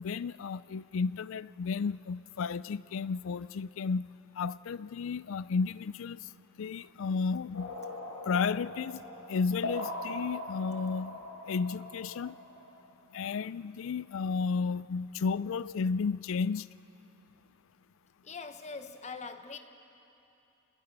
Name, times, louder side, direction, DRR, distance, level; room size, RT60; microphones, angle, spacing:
voice 1, 0.0-4.1 4.4-6.2 6.6-7.7 8.3-9.0 9.3-11.2 11.5-12.3 13.1-16.7, left 5 dB, 65° left, 18 dB, 0.4 m, -32 dB
sound 1, 7.5-12.9, left 2 dB, 80° left, 4.9 m, -41 dB
voice 2, 18.2-19.6, left 4 dB, 30° left, 8 dB, 1.0 m, -42 dB
27.5 x 20.5 x 5.4 m, 2.9 s
head